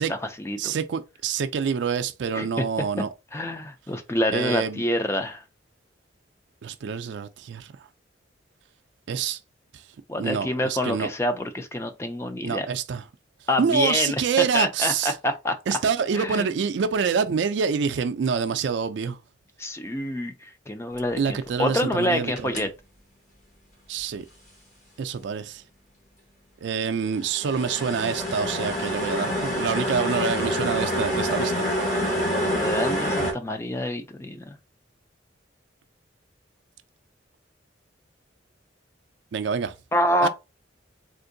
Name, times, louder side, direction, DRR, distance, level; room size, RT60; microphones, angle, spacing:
voice 1, 0.0-0.7 2.3-2.5 3.3-5.4 10.1-12.7 13.5-15.6 16.1-16.5 19.6-22.7 32.4-34.6 39.9-40.3, left 1 dB, 15° left, 0.4 m, -27 dB
voice 2, 0.6-3.1 4.3-4.8 6.6-7.7 9.1-9.4 10.2-11.1 12.4-13.0 13.6-15.1 15.7-19.2 21.2-22.7 23.9-24.3 25.0-25.6 26.6-32.0 39.3-39.7 40.2-40.3, right 6 dB, 70° right, 0.4 m, -26 dB
sound 1, 22.4-22.6 27.1-33.3, equal, 40° left, 1.1 m, -26 dB
3.7 x 2.5 x 2.6 m
head